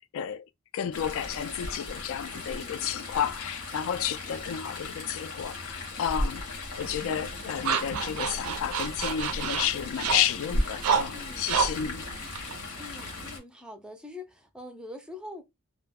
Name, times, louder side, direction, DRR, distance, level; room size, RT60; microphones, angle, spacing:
voice 1, 0.1-0.4 0.7-12.0, left 9 dB, 60° left, 0.3 m, -31 dB
Chatter / Stream, 0.9-13.4, left 2 dB, 90° left, 0.9 m, -36 dB
voice 2, 2.4-2.9 11.1-11.5 12.8-15.4, left 2 dB, 5° right, 0.4 m, -44 dB
sound 1, 6.8-13.3, right 7 dB, 75° right, 0.4 m, -31 dB
2.3 x 2.0 x 3.4 m
head